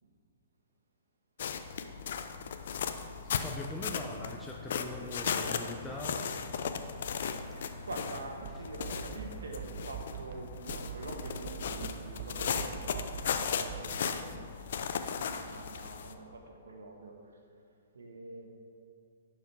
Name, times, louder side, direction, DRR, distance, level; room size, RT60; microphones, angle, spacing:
sound 1, 1.4-16.1, left 7 dB, 65° left, 0.6 m, -37 dB
voice 1, 3.4-6.3 7.5-7.8, left 1 dB, 5° left, -2 dB, 0.7 m, -42 dB
voice 2, 7.1-17.1 17.9-18.5, right 2 dB, 85° right, 2 dB, 1.4 m, -46 dB
sound 2, 8.4-14.0, right 9 dB, 50° right, 0.4 m, -44 dB
11.5 x 4.8 x 4.7 m, 2.5 s
hypercardioid pair, 130°, 0 cm